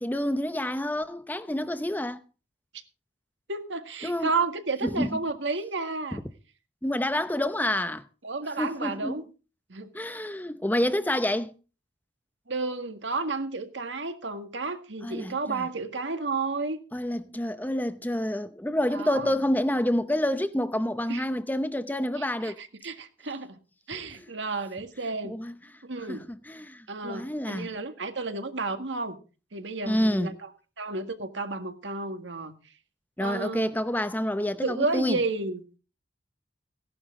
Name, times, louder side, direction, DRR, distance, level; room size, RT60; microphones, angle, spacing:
voice 1, 0.0-2.2 4.0-4.3 4.8-5.2 6.1-6.2 6.8-8.1 8.6-9.2 9.9-11.5 15.0-15.7 16.9-22.6 25.2-25.5 26.0-27.7 29.9-30.4 33.2-35.2, left 1 dB, 10° left, 0.7 m, -28 dB
voice 2, 3.5-6.2 8.2-9.2 9.7-9.9 12.5-16.8 18.9-19.3 21.1-21.2 22.2-23.6 23.9-25.4 25.9-26.3 26.9-29.2 29.5-30.3 30.8-32.5 33.2-33.8 34.6-35.6, right 3 dB, 90° right, 1.8 m, -32 dB
16.5 x 11.0 x 3.8 m
head